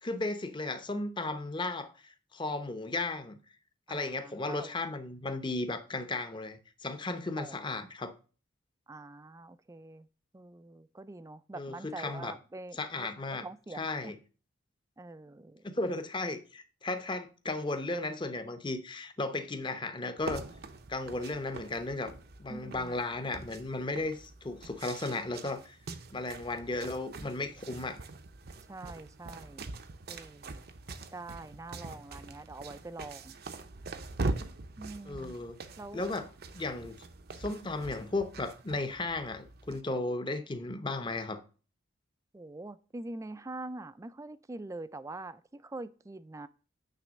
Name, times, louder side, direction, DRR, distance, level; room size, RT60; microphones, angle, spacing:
voice 1, 0.0-3.4 3.9-8.1 11.5-12.3 12.7-13.4 13.7-14.2 15.6-20.4 20.9-22.1 22.4-25.8 26.1-28.0 35.0-35.6 35.9-36.3 36.5-36.9 37.4-41.4, left 2 dB, 25° left, 0.7 m, -35 dB
voice 2, 3.9-4.7 7.4-7.6 8.9-10.1 10.3-13.1 13.4-14.1 15.0-15.7 22.5-22.9 28.7-29.6 30.1-30.6 31.1-33.3 34.8-35.4 35.8-36.0 42.3-46.5, right 2 dB, 15° right, 0.3 m, -44 dB
sound 1, 20.2-39.8, right 3 dB, 50° right, 0.7 m, -43 dB
9.1 x 3.3 x 6.3 m
head